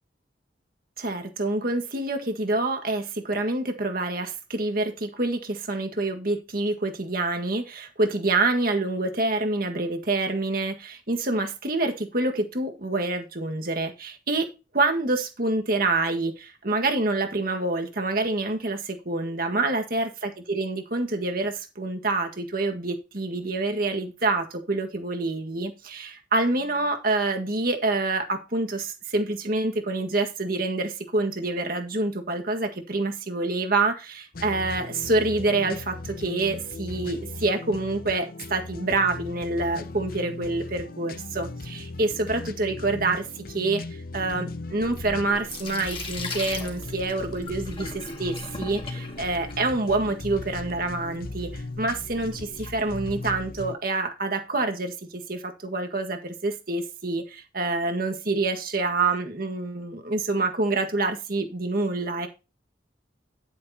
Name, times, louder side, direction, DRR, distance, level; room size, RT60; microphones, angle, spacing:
voice 1, 1.0-62.3, right 2 dB, 50° right, 5 dB, 1.8 m, -27 dB
sound 1, 34.3-53.8, left 2 dB, 50° left, 0.7 m, -38 dB
Sink (filling or washing), 44.7-53.5, left 3 dB, 30° left, 2.1 m, -41 dB
11.0 x 9.6 x 2.9 m, 0.28 s
head